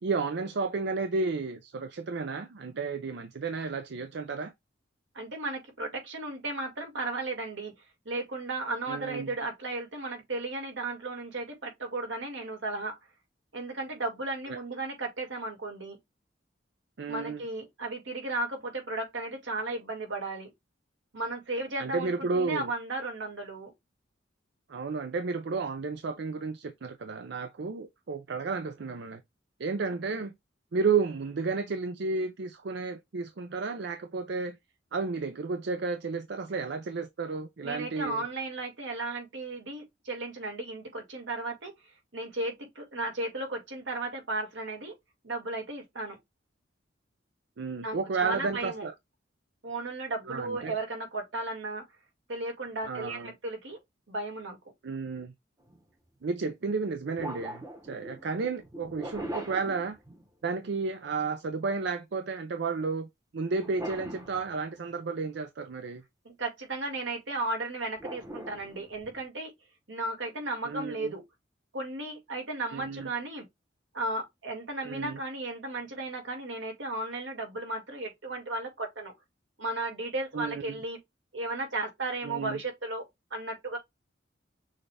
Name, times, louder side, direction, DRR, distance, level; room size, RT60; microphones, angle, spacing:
voice 1, 0.0-4.5 8.9-9.3 14.5-14.6 17.0-17.4 21.8-22.7 24.7-29.2 29.6-30.3 30.7-34.6 34.9-38.2 47.6-48.9 50.3-50.7 52.9-53.3 54.8-55.3 56.2-60.0 60.4-63.1 63.3-66.0 70.6-71.1 72.7-73.1 74.8-75.2 80.3-80.8 82.2-82.6, right 4 dB, 65° right, 0.5 m, -32 dB
voice 2, 5.1-7.7 8.1-12.9 13.5-16.0 17.1-20.5 21.1-23.7 30.1-30.2 37.6-41.7 42.1-44.9 45.2-46.2 47.8-48.9 49.6-51.8 52.3-53.8 54.1-54.6 66.2-69.5 69.9-71.2 71.7-73.5 73.9-79.1 79.6-81.0 81.3-83.8, right 2 dB, 85° right, 2.0 m, -35 dB
sound 1, 55.6-55.8 57.2-60.6 63.6-65.0 68.0-69.2, equal, 20° right, 1.0 m, -41 dB
6.4 x 2.4 x 3.3 m
head